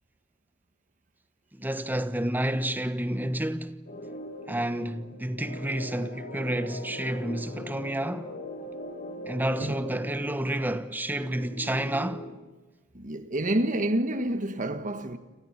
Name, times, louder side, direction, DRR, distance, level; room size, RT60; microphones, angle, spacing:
voice 1, 1.5-3.8 4.5-8.4 9.3-12.3, right 1 dB, 10° right, 1.2 m, -30 dB
sound 1, 3.9-12.4, left 1 dB, 50° left, 4.2 m, -41 dB
voice 2, 12.9-15.2, right 1 dB, 40° right, 1.6 m, -28 dB
30.0 x 27.0 x 6.0 m
head